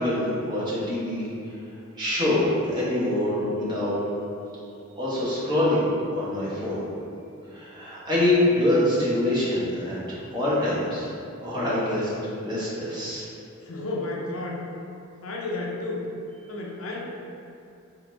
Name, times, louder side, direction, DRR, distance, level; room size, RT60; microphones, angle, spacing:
voice 1, 0.0-1.5 1.9-4.0 5.0-5.8 6.1-6.8 7.5-11.1 11.4-13.3, left 1 dB, 20° right, -9 dB, 1.1 m, -25 dB
voice 2, 13.6-14.6 15.2-16.1 16.5-17.1, left 2 dB, 75° left, -2 dB, 0.6 m, -32 dB
3.8 x 2.6 x 4.5 m, 2.7 s
head